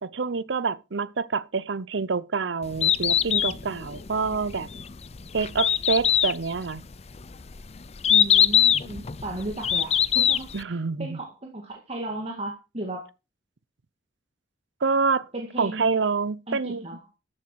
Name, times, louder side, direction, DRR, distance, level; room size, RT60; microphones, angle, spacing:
voice 1, 0.0-4.7 5.3-6.8 10.5-11.2 14.8-15.3 15.6-16.8, right 4 dB, 70° right, 0.7 m, -27 dB
Bird, 2.6-10.6, left 9 dB, 35° left, 0.5 m, -23 dB
voice 2, 8.1-13.1 15.3-15.9 16.5-17.0, right 1 dB, 35° right, 2.1 m, -35 dB
13.5 x 7.5 x 4.6 m
head